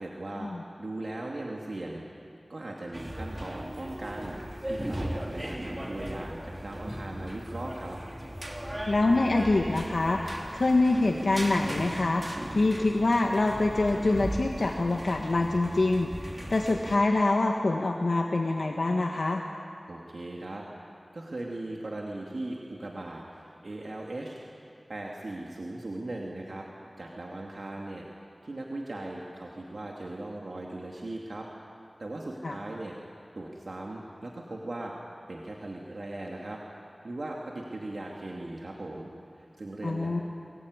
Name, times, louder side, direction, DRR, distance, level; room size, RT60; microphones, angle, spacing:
voice 1, 0.0-0.5 0.8-2.0 2.5-4.4 4.7-8.0 19.9-20.6 21.1-24.4 24.9-26.7 27.0-28.1 28.4-31.5 32.0-33.0 33.4-34.9 35.3-36.8 37.0-39.1 39.4-40.2, right 2 dB, 75° right, -2 dB, 2.5 m, -38 dB
sound 1, 2.9-17.0, equal, 20° right, 3.3 m, -38 dB
voice 2, 8.9-10.2 10.5-12.2 12.5-19.4 32.4-32.6 39.8-40.2, left 2 dB, 75° left, 2 dB, 1.5 m, -25 dB
23.5 x 22.5 x 9.7 m, 2.5 s
wide cardioid pair, 55°, 0 cm